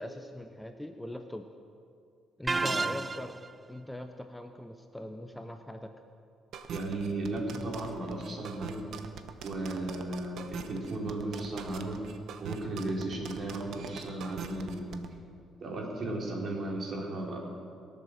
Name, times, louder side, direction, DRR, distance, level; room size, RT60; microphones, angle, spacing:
voice 1, 0.0-1.5 2.4-3.4 3.7-5.9, left 1 dB, 5° left, 6 dB, 0.8 m, -41 dB
sound 1, 2.5-3.5, right 3 dB, 25° right, 0.3 m, -30 dB
voice 2, 2.5-2.8 6.7-8.9 9.4-12.0 12.4-15.0 15.6-17.4, right 2 dB, 50° right, -1 dB, 3.8 m, -35 dB
sound 2, 6.5-15.1, right 7 dB, 70° right, 1.0 m, -43 dB
22.0 x 7.7 x 6.5 m, 2.4 s
cardioid pair, 90°, 0 cm